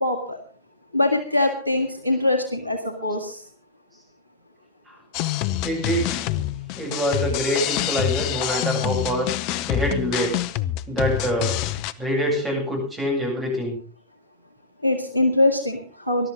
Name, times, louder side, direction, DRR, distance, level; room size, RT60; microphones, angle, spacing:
voice 1, 0.0-0.4 0.9-3.4 14.8-16.3, left 2 dB, 85° right, 6 dB, 1.9 m, -22 dB
sound 1, 5.1-11.9, left 13 dB, 45° left, 0.7 m, -26 dB
voice 2, 5.6-6.2 6.8-9.3 9.7-10.3 10.9-11.6 12.0-13.8, equal, 15° right, 0 dB, 8.0 m, -25 dB
20.0 x 12.5 x 3.7 m, 0.42 s
figure-of-eight pair, 90°, 0 cm